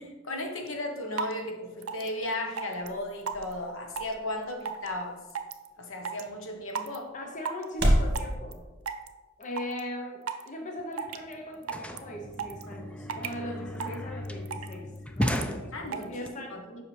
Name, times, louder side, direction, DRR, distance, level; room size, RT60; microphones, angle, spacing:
voice 1, 0.0-5.2 5.8-7.1 15.7-16.6, left 1 dB, 65° left, 4 dB, 0.9 m, -35 dB
sound 1, 0.7-0.8 1.2-1.3 1.8-2.1 2.6-2.9 3.3-3.5 4.0-4.1 4.6-4.9 5.3-5.7 6.0-6.2 6.7-7.0 7.4-7.6 8.1-8.5 8.9-9.1 9.4-9.8 10.3-10.5 11.0-11.3 11.6-12.0 12.3-12.6 13.1-13.3 13.8-13.9 14.2-14.7 15.2-15.4 15.9-16.0, right 6 dB, 80° right, 0.5 m, -33 dB
sound 2, 1.9-8.2, equal, 50° right, 1.2 m, -33 dB
voice 2, 7.1-8.6 9.4-14.9 15.1-16.8, left 1 dB, 35° left, 2 dB, 0.7 m, -39 dB
sound 3, 10.8-10.9 11.1-16.3, left 1 dB, 5° left, 0.3 m, -35 dB
7.6 x 5.5 x 3.2 m, 1.2 s
head